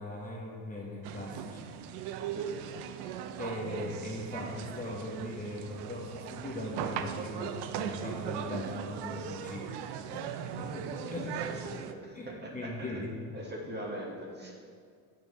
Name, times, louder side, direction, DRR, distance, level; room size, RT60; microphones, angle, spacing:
voice 1, 0.0-1.7 3.4-9.7 10.1-10.2 10.6-11.4 12.1-13.1, left 1 dB, 20° left, -3 dB, 1.2 m, -39 dB
sound 1, 1.0-11.9, right 9 dB, 70° right, 0.6 m, -39 dB
voice 2, 2.3-2.9 10.8-10.9 11.6-12.9 13.3-14.5, equal, 25° right, -2 dB, 1.8 m, -42 dB
8.6 x 6.2 x 4.1 m, 2.1 s
supercardioid pair, 100°, 42 cm